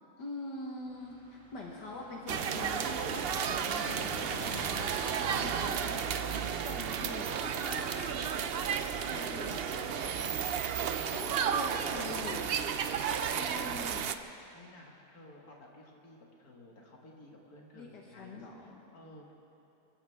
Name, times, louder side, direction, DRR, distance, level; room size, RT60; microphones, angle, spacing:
voice 1, 0.2-6.0 6.3-12.5 13.4-14.1 17.7-18.8, left 3 dB, 85° left, -2 dB, 2.0 m, -44 dB
sound 1, 0.8-9.3 10.2-10.3 10.5-10.6 10.8-10.9, left 1 dB, 5° left, 3.5 m, -50 dB
sound 2, 2.3-14.1, right 7 dB, 85° right, 0.5 m, -33 dB
voice 2, 11.0-12.4 12.9-13.7 14.5-19.3, left 1 dB, 60° left, -1 dB, 2.5 m, -54 dB
25.5 x 15.0 x 3.5 m, 2.9 s
omnidirectional pair, 1.8 m